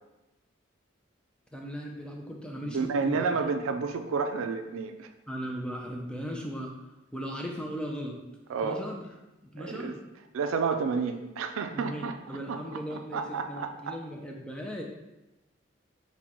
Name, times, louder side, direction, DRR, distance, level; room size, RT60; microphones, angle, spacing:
voice 1, 1.5-3.2 5.3-6.7 7.1-8.2 8.6-9.1 9.5-10.0 11.7-14.8, equal, 5° left, 0 dB, 0.4 m, -37 dB
voice 2, 2.6-5.1 8.5-8.8 9.6-9.9 10.3-13.9, right 5 dB, 85° right, 7 dB, 0.4 m, -31 dB
6.0 x 2.2 x 2.9 m, 1.0 s
head